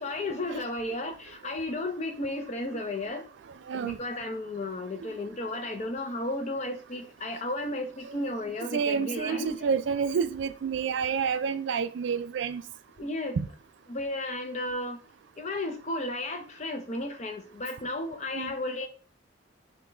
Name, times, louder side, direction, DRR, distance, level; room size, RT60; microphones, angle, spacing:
voice 1, 0.0-3.3 3.7-9.7 13.0-13.4 13.9-15.0 15.4-18.9, left 2 dB, 35° left, 0.6 m, -33 dB
voice 2, 3.7-4.0 5.0-5.1 8.0-8.2 8.7-12.6 13.4-13.5 18.3-18.5, right 6 dB, 65° right, 0.3 m, -29 dB
5.8 x 2.3 x 3.0 m
head